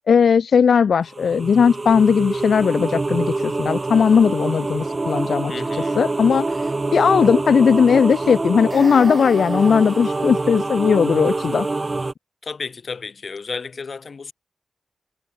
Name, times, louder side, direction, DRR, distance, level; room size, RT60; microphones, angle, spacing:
voice 1, 0.1-5.5 6.0-11.7, left 6 dB, 65° left, 0.6 m, -17 dB
sound 1, 1.1-12.1, right 2 dB, 25° right, 1.9 m, -25 dB
voice 2, 5.5-6.0 12.4-14.3, left 5 dB, 45° left, 7.8 m, -32 dB
wide cardioid pair, 150°, 0 cm